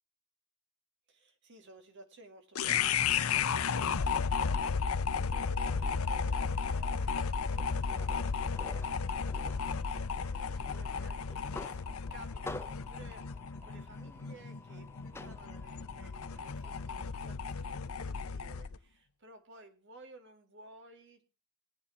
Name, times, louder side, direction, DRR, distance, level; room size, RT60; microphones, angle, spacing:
voice 1, 1.1-3.6 5.3-11.8 12.1-21.2, right 2 dB, 60° right, 6 dB, 2.3 m, -56 dB
sound 1, 2.5-18.8, left 6 dB, 85° left, 0.7 m, -34 dB
sound 2, 5.7-17.1, left 2 dB, 10° left, 0.7 m, -51 dB
18.5 x 8.9 x 4.2 m, 0.34 s
head